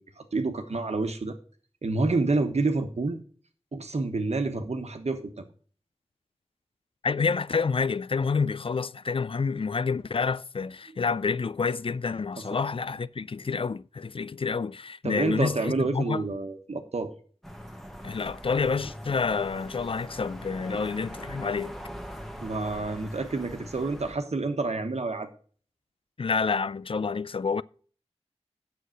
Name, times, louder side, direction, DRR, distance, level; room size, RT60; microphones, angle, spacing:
voice 1, 0.0-1.4 1.8-3.2 3.7-5.5 15.0-17.1 20.7-20.8 22.4-25.3, right 3 dB, 85° right, 1.2 m, -28 dB
voice 2, 7.0-16.2 18.0-21.8 26.2-27.6, left 5 dB, 55° left, 0.4 m, -28 dB
sound 1, 17.4-24.1, equal, ahead, 1.3 m, -42 dB
7.9 x 6.4 x 6.3 m
wide cardioid pair, 60°, 11 cm